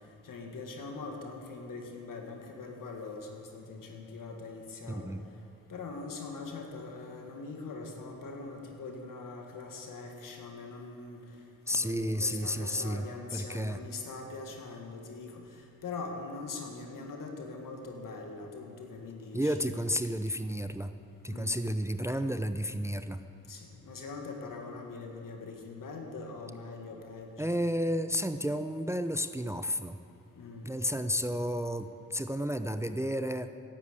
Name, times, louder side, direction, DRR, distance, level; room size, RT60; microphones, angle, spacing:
voice 1, 0.2-5.1 5.7-11.2 11.7-19.5 21.3-21.6 23.5-27.5 30.4-30.7, left 3 dB, 70° left, 3 dB, 1.7 m, -42 dB
voice 2, 4.9-5.2 11.7-13.1 13.3-13.8 19.3-20.9 21.2-23.2 27.4-30.0 30.6-33.5, equal, 10° right, 10 dB, 0.5 m, -32 dB
10.0 x 8.1 x 8.3 m, 2.4 s
supercardioid pair, 40°, 33 cm